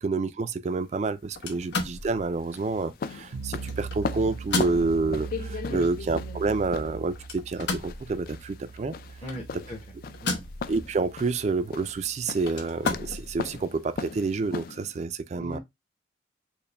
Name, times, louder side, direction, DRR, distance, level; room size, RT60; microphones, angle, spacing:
voice 1, 0.0-8.9 9.5-9.6 10.7-15.6, right 3 dB, 40° right, 0.3 m, -28 dB
sound 1, 0.7-15.0, left 5 dB, 55° left, 0.3 m, -38 dB
sound 2, 1.3-13.6, left 3 dB, 75° left, 0.9 m, -37 dB
sound 3, 3.3-14.5, right 5 dB, 90° right, 0.5 m, -41 dB
voice 2, 9.2-9.8 10.2-10.4 15.4-15.6, equal, 35° left, 0.8 m, -37 dB
4.6 x 2.1 x 3.2 m
head